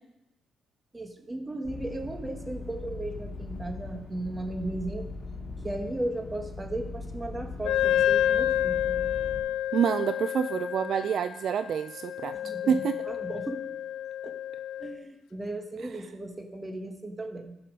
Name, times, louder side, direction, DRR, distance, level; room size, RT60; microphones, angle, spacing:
voice 1, 0.9-5.1 5.6-9.0 12.3-12.8 13.1-13.6 14.2-14.4 14.8-17.6, right 1 dB, 20° right, 5 dB, 1.5 m, -36 dB
sound 1, 1.6-9.4, left 3 dB, 35° left, 2.4 m, -40 dB
Wind instrument woodwind instrument, 7.6-15.0, left 11 dB, 90° left, 0.6 m, -29 dB
voice 2, 9.7-12.3 12.7-13.0, right 8 dB, 60° right, 11 dB, 0.4 m, -27 dB
15.0 x 5.8 x 5.3 m, 0.91 s
cardioid pair, 90°, 0 cm